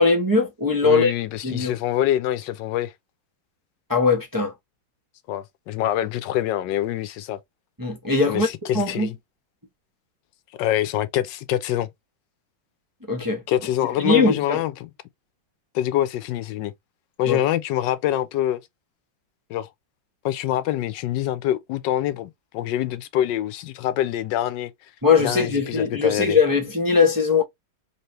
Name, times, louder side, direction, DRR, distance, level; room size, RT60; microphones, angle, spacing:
voice 1, 0.0-1.1 1.4-1.7 3.9-4.5 7.8-8.5 8.7-9.1 13.1-13.4 14.0-14.6 17.3-17.4 25.0-27.4, left 4 dB, 30° right, 0.3 m, -20 dB
voice 2, 0.8-2.9 5.3-7.4 8.2-9.1 10.6-11.9 13.5-14.9 15.7-16.7 17.2-18.6 19.5-19.7 20.2-24.7 25.2-26.4, left 12 dB, 75° left, 1.2 m, -25 dB
3.6 x 2.8 x 3.1 m
omnidirectional pair, 2.1 m